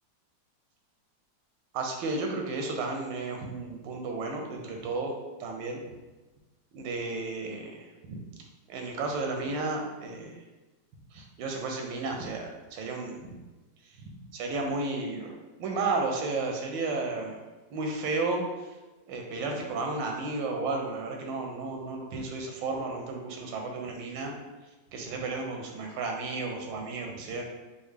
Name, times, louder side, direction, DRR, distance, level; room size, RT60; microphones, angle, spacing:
voice 1, 1.7-5.1 5.4-5.8 6.7-8.2 8.7-10.4 11.1-13.4 14.3-17.4 17.7-18.4 19.1-24.3 24.9-27.4, right 3 dB, 85° right, 2 dB, 1.3 m, -33 dB
4.1 x 2.0 x 3.2 m, 1.2 s
omnidirectional pair, 2.0 m